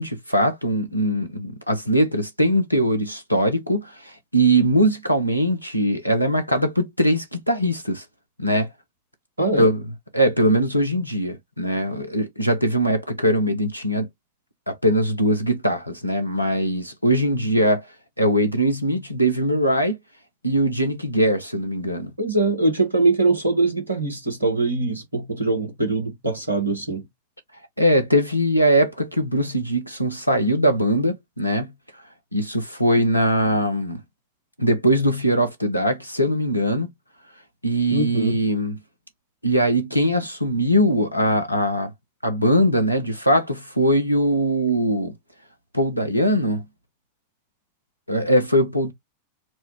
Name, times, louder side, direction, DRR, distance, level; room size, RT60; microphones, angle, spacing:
voice 1, 0.0-8.0 8.4-8.7 9.6-9.8 10.1-14.1 14.7-17.8 18.2-20.0 20.4-22.1 27.8-31.7 32.3-34.0 34.6-36.9 37.6-38.8 39.4-41.9 42.2-45.1 45.7-46.6 48.1-48.9, equal, 90° left, 0.7 m, -21 dB
voice 2, 9.4-9.7 22.2-27.1 37.9-38.4, right 2 dB, 80° right, 1.2 m, -22 dB
4.4 x 2.2 x 2.9 m
figure-of-eight pair, 90°, 0 cm